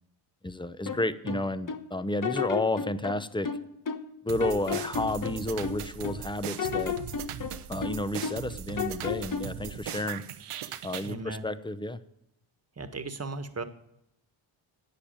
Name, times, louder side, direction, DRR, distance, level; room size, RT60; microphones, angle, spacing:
voice 1, 0.4-3.5 4.2-7.0 7.7-10.2 10.8-12.0, left 1 dB, 10° left, 13 dB, 0.9 m, -31 dB
sound 1, 0.9-1.9 2.2-4.1 4.4-6.2 6.6-8.5 8.8-9.6, left 6 dB, 40° left, 1.2 m, -33 dB
sound 2, 4.3-11.1, right 9 dB, 80° right, 1.0 m, -39 dB
voice 2, 11.0-11.5 12.8-13.6, right 3 dB, 30° right, 9 dB, 1.5 m, -37 dB
11.5 x 8.7 x 8.9 m, 0.81 s
cardioid pair, 55°, 50 cm